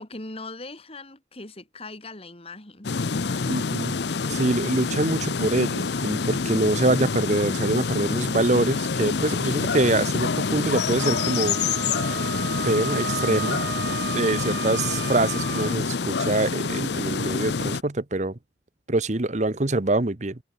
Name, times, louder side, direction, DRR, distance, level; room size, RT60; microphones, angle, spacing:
voice 1, 0.0-2.9, left 2 dB, 35° left, 3.2 m, -40 dB
sound 1, 2.8-17.8, left 4 dB, 70° left, 0.7 m, -27 dB
voice 2, 3.4-4.0 4.3-11.6 12.0-12.2 12.6-13.6 14.1-18.4 18.9-20.4, right 2 dB, 40° right, 1.1 m, -25 dB
Wind instrument woodwind instrument, 11.0-15.8, right 5 dB, 65° right, 1.2 m, -33 dB
head